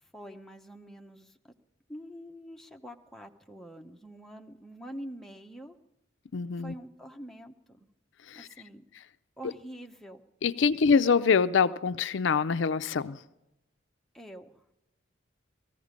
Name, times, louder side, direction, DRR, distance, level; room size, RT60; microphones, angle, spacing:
voice 1, 0.0-1.5 1.9-5.8 6.6-7.9 8.3-8.8 9.4-10.2 14.1-14.6, equal, ahead, 0.8 m, -46 dB
voice 2, 6.3-6.7 8.3-8.5 10.4-13.2, left 5 dB, 70° left, 0.5 m, -25 dB
18.0 x 15.0 x 5.1 m
head